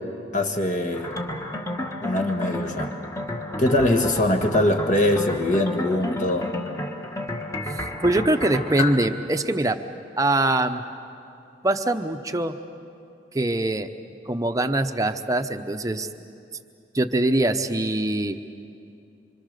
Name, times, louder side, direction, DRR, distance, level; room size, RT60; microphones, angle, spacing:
voice 1, 0.3-1.2 2.0-2.9 3.6-6.5, left 1 dB, 45° left, 3 dB, 1.6 m, -22 dB
sound 1, 0.9-9.1, left 1 dB, 15° left, 1.5 m, -31 dB
voice 2, 7.8-9.8 10.2-10.8 11.6-12.5 13.3-13.9 14.3-16.1 16.9-18.4, right 1 dB, 20° right, 7 dB, 0.8 m, -23 dB
25.5 x 25.5 x 6.7 m, 2.5 s
head